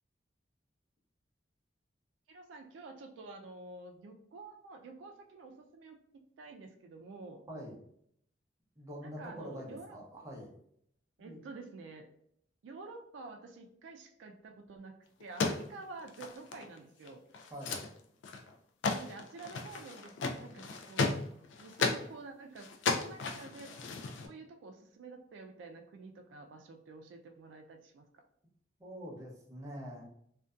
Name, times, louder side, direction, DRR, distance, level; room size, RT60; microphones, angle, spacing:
voice 1, 2.3-7.4 9.0-10.0 11.2-12.1 12.6-14.9 15.2-17.2 18.9-20.1 20.4-21.2 21.6-23.8 24.2-28.2, right 3 dB, 80° right, 4 dB, 0.3 m, -49 dB
voice 2, 8.8-10.5 11.2-11.4 17.5-17.8 28.8-30.1, equal, 20° right, -3 dB, 0.6 m, -45 dB
sound 1, 15.2-16.8 17.0-17.1 17.3-17.9 18.2-18.5 18.8-22.1 22.6-24.3, left 4 dB, 75° left, 0.3 m, -35 dB
2.6 x 2.1 x 2.3 m, 0.70 s
head